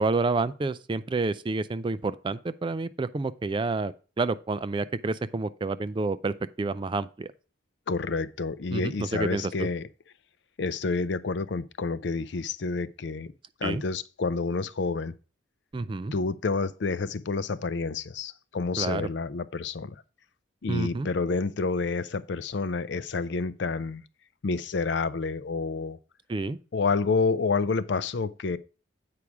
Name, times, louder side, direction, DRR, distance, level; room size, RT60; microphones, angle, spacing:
voice 1, 0.0-7.3 8.7-9.7 13.6-13.8 15.7-16.1 18.8-19.1 20.7-21.1 26.3-26.6, right 3 dB, 25° right, 0.3 m, -29 dB
voice 2, 7.9-9.9 10.6-13.3 13.6-15.1 16.1-20.0 20.6-24.0 24.4-26.0 26.7-28.6, left 4 dB, 60° left, 0.5 m, -29 dB
8.5 x 4.8 x 5.9 m
head